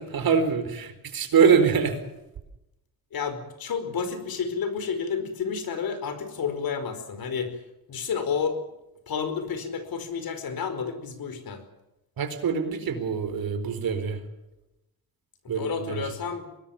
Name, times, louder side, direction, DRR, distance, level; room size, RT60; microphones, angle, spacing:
voice 1, 0.0-2.0 12.2-14.2 15.5-16.1, right 6 dB, 60° right, 9 dB, 4.4 m, -24 dB
voice 2, 3.1-7.6 7.9-8.6 9.1-11.6 15.4-16.4, left 6 dB, 60° left, 10 dB, 4.8 m, -30 dB
24.0 x 20.0 x 7.3 m, 0.94 s
cardioid pair, 115°, 40 cm